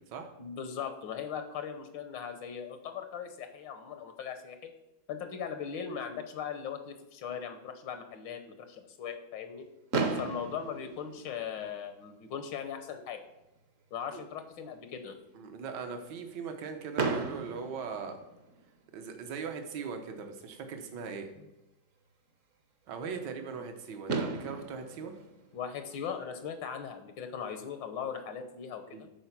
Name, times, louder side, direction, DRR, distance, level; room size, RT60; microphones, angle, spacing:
voice 1, 0.4-4.7 5.1-9.7 10.2-13.2 13.9-15.2 23.5-23.6 25.5-29.1, left 7 dB, 80° left, 8 dB, 1.6 m, -39 dB
Fireworks, 9.9-11.9 12.8-12.9 13.0-13.2 13.6-13.7 16.9-18.8 20.5-20.6 23.6-23.7 24.1-26.4, right 4 dB, 50° right, 1.1 m, -35 dB
voice 2, 15.3-18.2 18.9-21.3 22.9-25.1 28.9-29.0, right 5 dB, 70° right, 5 dB, 1.6 m, -40 dB
11.0 x 4.4 x 5.8 m, 0.95 s
omnidirectional pair, 2.0 m